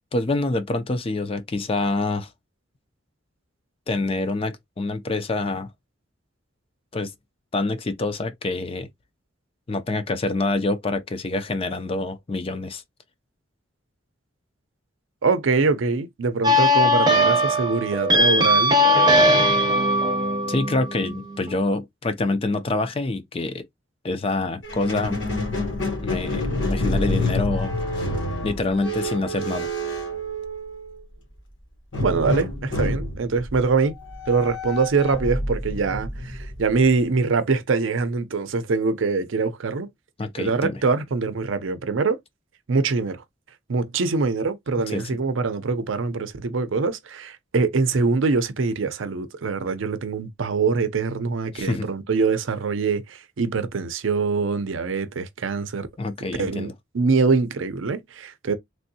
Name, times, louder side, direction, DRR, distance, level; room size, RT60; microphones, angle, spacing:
voice 1, 0.1-2.3 3.9-5.7 6.9-7.1 7.5-8.9 9.7-12.8 20.5-23.6 24.0-25.3 26.0-26.4 26.7-27.7 28.4-29.7 40.2-40.8 44.8-45.1 51.5-51.9 56.0-56.7, left 2 dB, 30° left, 0.4 m, -26 dB
voice 2, 15.2-18.8 32.0-34.0 34.3-39.9 40.4-42.2 42.7-43.2 43.7-55.9 56.4-58.5, right 4 dB, 75° right, 0.5 m, -23 dB
sound 1, 16.4-21.5, left 1 dB, 20° right, 0.6 m, -19 dB
Squeak, 24.6-31.0 31.9-37.1, left 1 dB, 65° left, 1.2 m, -28 dB
3.3 x 2.6 x 2.7 m
head